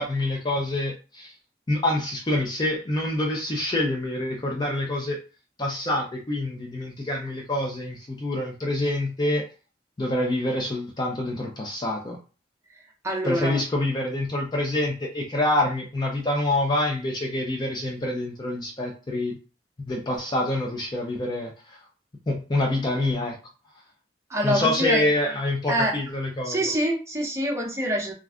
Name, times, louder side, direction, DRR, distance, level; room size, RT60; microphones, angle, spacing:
voice 1, 0.0-1.3 1.7-5.2 5.6-9.5 10.0-12.2 13.2-19.4 19.8-21.8 22.3-23.4 24.4-26.6, left 1 dB, 25° left, 0 dB, 0.4 m, -26 dB
voice 2, 13.0-13.6 24.3-25.0 25.7-25.9 26.4-28.1, equal, 15° right, -2 dB, 0.8 m, -25 dB
2.4 x 2.2 x 3.5 m, 0.34 s
head